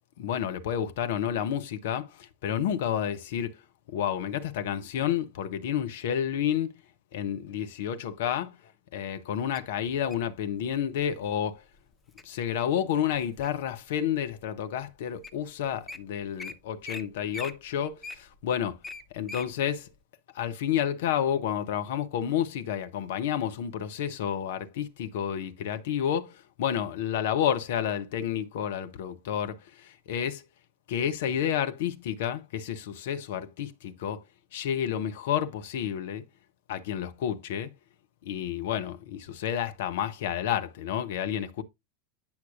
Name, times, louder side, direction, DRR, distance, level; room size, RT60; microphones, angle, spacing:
voice 1, 0.2-3.6 3.9-6.7 7.1-8.6 8.9-11.6 12.2-18.8 19.1-19.9 20.3-30.4 30.9-34.2 34.5-36.2 36.7-37.7 38.2-41.6, left 9 dB, 55° left, 0.8 m, -30 dB
Wild animals, 9.5-10.3 11.0-11.3 11.8-12.2 12.7-13.7 14.3-14.4 15.0-15.1 15.2-15.4 15.7-16.0 16.4-16.5 16.8-17.0 17.3-19.5 19.9-20.0, left 3 dB, 10° left, 0.7 m, -41 dB
8.8 x 5.9 x 2.5 m
figure-of-eight pair, 90°, 0 cm